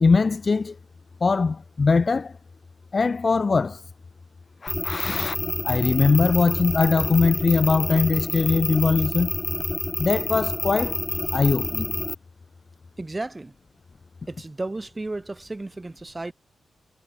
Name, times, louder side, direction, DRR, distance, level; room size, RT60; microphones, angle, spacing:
voice 1, 0.0-0.8 1.2-2.3 2.9-3.8 4.6-5.4 5.6-9.3 10.0-11.0 11.3-12.0, left 4 dB, 25° left, 0.5 m, -21 dB
sound 1, 4.7-12.1, left 2 dB, 10° left, 1.0 m, -28 dB
voice 2, 13.0-13.5 14.3-16.3, right 2 dB, 15° right, 1.2 m, -33 dB
wide cardioid pair, 180°, 0 cm